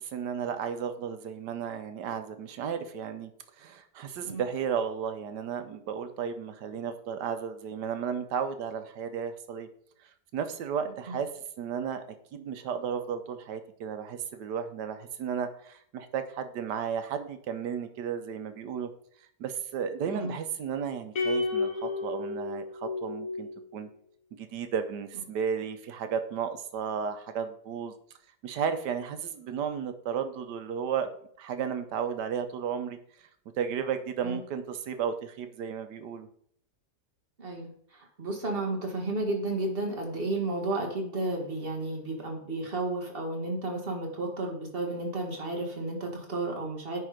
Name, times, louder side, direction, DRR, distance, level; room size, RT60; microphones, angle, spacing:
voice 1, 0.0-3.3 3.6-9.7 10.3-11.3 11.6-12.0 12.3-18.9 19.4-23.9 24.3-27.9 28.4-31.1 31.4-33.0 33.6-36.3, right 7 dB, 80° right, 9 dB, 1.4 m, -33 dB
sound 1, 21.2-23.6, left 3 dB, 55° left, 1.6 m, -31 dB
voice 2, 37.4-37.7 38.2-47.0, right 2 dB, 35° right, 1 dB, 1.7 m, -32 dB
9.7 x 3.7 x 4.9 m, 0.63 s
omnidirectional pair, 1.8 m